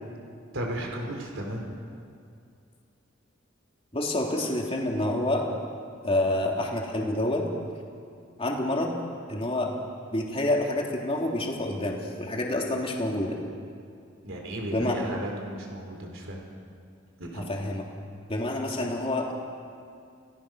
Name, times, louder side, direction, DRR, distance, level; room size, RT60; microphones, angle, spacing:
voice 1, 0.5-1.8 14.2-16.4 17.2-17.5, right 1 dB, 75° right, 1 dB, 4.0 m, -34 dB
voice 2, 3.9-5.5 6.0-7.5 8.4-8.9 9.3-9.7 10.1-13.4 14.7-15.0 17.3-17.8 18.3-19.3, left 1 dB, 30° left, 0 dB, 3.1 m, -28 dB
29.0 x 18.5 x 6.3 m, 2.4 s
head